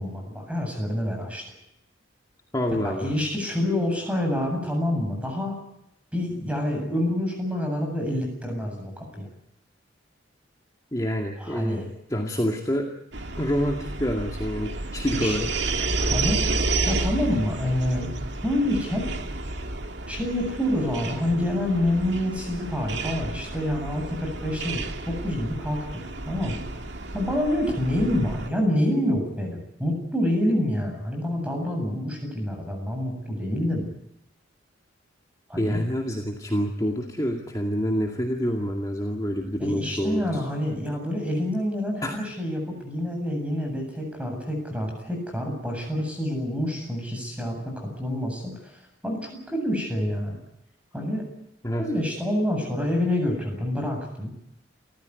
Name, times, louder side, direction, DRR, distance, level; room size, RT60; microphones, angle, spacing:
voice 1, 0.0-1.4 2.8-5.6 6.1-9.3 11.4-11.9 15.1-15.4 16.0-16.4 16.9-18.1 18.4-19.1 20.1-26.6 27.1-33.9 35.5-35.8 39.6-50.4 50.9-51.2 51.8-54.3, left 1 dB, 5° right, 2 dB, 7.9 m, -27 dB
voice 2, 2.5-3.1 10.9-11.8 12.1-12.9 13.4-15.5 35.6-40.4 42.0-42.1 51.6-51.9, equal, 20° left, 1 dB, 2.2 m, -27 dB
sound 1, 13.1-28.5, right 2 dB, 65° right, 2.1 m, -31 dB
29.0 x 14.5 x 9.7 m, 0.81 s
head